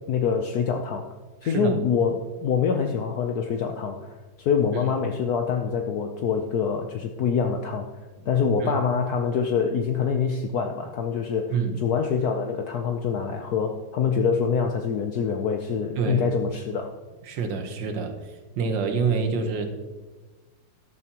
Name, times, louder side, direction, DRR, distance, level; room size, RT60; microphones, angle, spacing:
voice 1, 0.1-1.1 1.4-7.9 8.3-17.0, left 6 dB, 65° left, 4 dB, 1.1 m, -25 dB
voice 2, 1.4-1.8 4.7-4.8 8.6-8.7 11.5-11.8 16.0-16.3 17.3-18.1 18.6-19.7, right 5 dB, 75° right, 6 dB, 1.8 m, -26 dB
13.5 x 12.5 x 3.0 m, 1.2 s
omnidirectional pair, 2.0 m